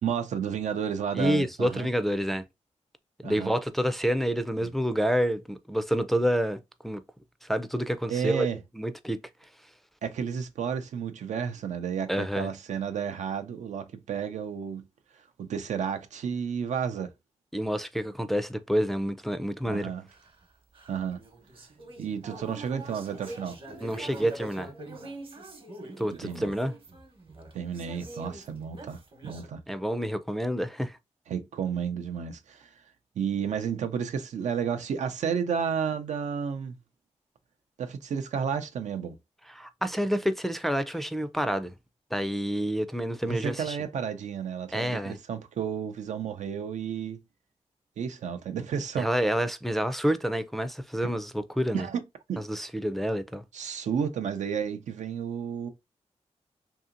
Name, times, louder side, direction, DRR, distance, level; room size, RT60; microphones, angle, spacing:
voice 1, 0.0-1.9 3.2-3.5 4.6-4.7 8.1-8.6 10.0-14.8 15.4-17.1 19.6-20.0 20.9-21.2 22.0-23.6 26.2-26.5 27.5-29.6 31.3-32.7 33.2-36.7 37.8-39.2 43.2-47.2 48.0-49.1 51.7-52.0 52.3-52.4 53.5-55.7, right 7 dB, 85° right, 0.5 m, -32 dB
voice 2, 1.1-2.4 3.2-7.0 7.4-8.5 8.7-9.2 12.1-12.5 17.5-19.9 23.8-24.7 26.0-26.7 29.7-31.0 39.5-41.8 42.1-43.8 44.7-45.2 49.0-51.9 52.4-53.4, equal, ahead, 0.4 m, -28 dB
sound 1, 20.1-29.5, right 2 dB, 45° right, 0.9 m, -44 dB
2.7 x 2.7 x 2.5 m
cardioid pair, 75°, 12 cm